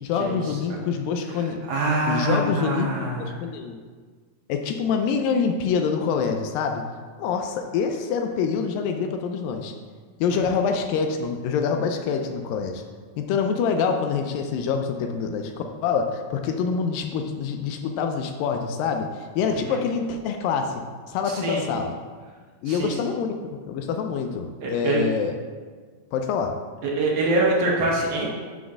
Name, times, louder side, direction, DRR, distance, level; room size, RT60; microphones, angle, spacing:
voice 1, 0.0-1.6 2.1-3.8 4.5-6.8 7.2-9.7 10.2-12.8 13.2-20.8 21.1-21.9 22.6-25.3 26.1-26.6, left 6 dB, 80° left, 5 dB, 2.1 m, -26 dB
voice 2, 1.7-3.3 19.7-19.8 21.4-21.6 22.7-22.9 24.6-25.0 26.8-28.3, right 2 dB, 60° right, -4 dB, 1.7 m, -24 dB
5.8 x 4.0 x 6.2 m, 1.5 s
omnidirectional pair, 4.1 m